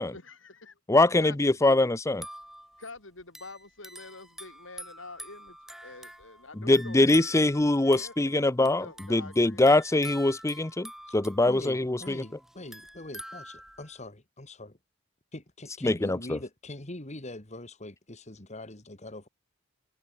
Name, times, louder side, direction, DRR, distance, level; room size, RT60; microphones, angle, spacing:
voice 1, 0.0-0.8 1.2-1.9 2.8-5.6 5.8-7.3 7.8-9.7, left 3 dB, 90° left, 5.2 m, -47 dB
voice 2, 0.9-2.2 6.6-12.2 15.8-16.4, left 2 dB, 15° left, 0.6 m, -23 dB
sound 1, 2.1-14.0, right 1 dB, ahead, 4.4 m, -47 dB
voice 3, 11.4-14.8 15.3-19.3, left 1 dB, 35° left, 2.5 m, -42 dB
head